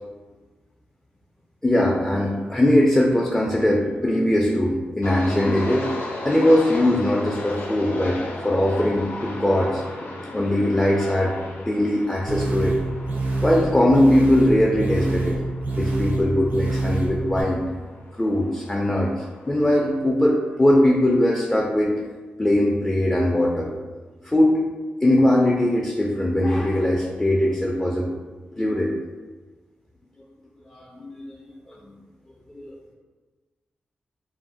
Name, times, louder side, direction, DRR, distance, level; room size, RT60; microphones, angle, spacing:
voice 1, 1.6-5.9 6.2-9.8 10.3-11.3 11.7-12.8 13.4-15.4 15.7-17.6 18.2-23.7 24.2-24.6 25.0-28.1 28.5-28.9 30.7-31.5 32.5-32.9, left 1 dB, 15° left, -1 dB, 0.4 m, -20 dB
sound 1, 5.0-20.0, left 2 dB, 70° left, 0.5 m, -37 dB
sound 2, 12.3-17.4, right 2 dB, 60° right, 0.6 m, -26 dB
2.4 x 2.0 x 3.7 m, 1.3 s
cardioid pair, 55°, 4 cm